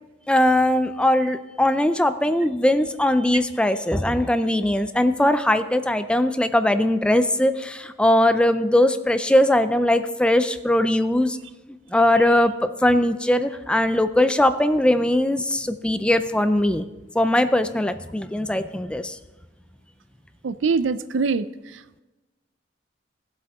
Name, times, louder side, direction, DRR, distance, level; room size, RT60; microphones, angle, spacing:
voice 1, 0.3-11.4 11.9-16.9 17.1-19.2, left 1 dB, 5° left, 10 dB, 0.4 m, -20 dB
voice 2, 20.4-21.5 21.7-22.0, right 4 dB, 80° right, 15 dB, 0.5 m, -24 dB
17.0 x 7.7 x 3.6 m, 1.1 s
head